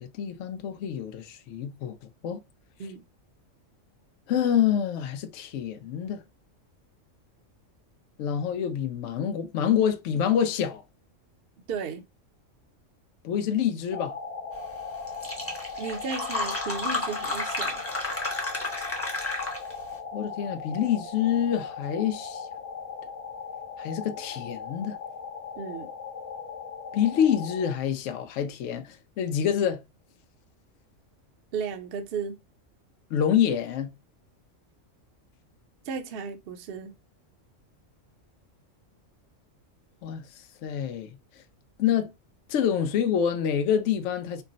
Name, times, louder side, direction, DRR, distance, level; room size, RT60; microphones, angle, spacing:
voice 1, 0.0-2.0 2.2-2.4 4.3-6.2 8.2-10.8 13.2-14.1 19.3-19.4 20.1-22.5 23.8-25.0 26.9-29.8 33.1-33.9 40.0-41.2 41.8-42.1 42.5-44.4, left 9 dB, 75° left, 0.9 m, -27 dB
voice 2, 11.7-12.0 15.8-17.8 25.6-25.9 31.5-32.4 35.9-36.9, right 5 dB, 55° right, 0.8 m, -34 dB
sound 1, 13.9-27.8, left 5 dB, 55° left, 0.4 m, -38 dB
Fill (with liquid), 14.8-14.9 15.1-19.8, left 2 dB, 15° left, 0.8 m, -32 dB
4.5 x 2.0 x 3.8 m
omnidirectional pair, 1.3 m